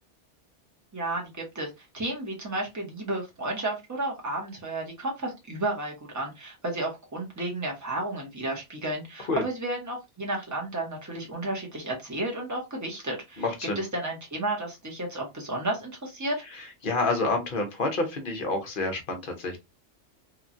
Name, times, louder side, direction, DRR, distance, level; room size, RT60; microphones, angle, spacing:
voice 1, 0.9-13.4 13.7-16.4, right 2 dB, 15° right, -1 dB, 0.8 m, -32 dB
voice 2, 13.4-13.8 16.5-19.6, left 3 dB, 50° left, 4 dB, 0.9 m, -28 dB
2.9 x 2.3 x 2.5 m, 0.22 s
omnidirectional pair, 1.2 m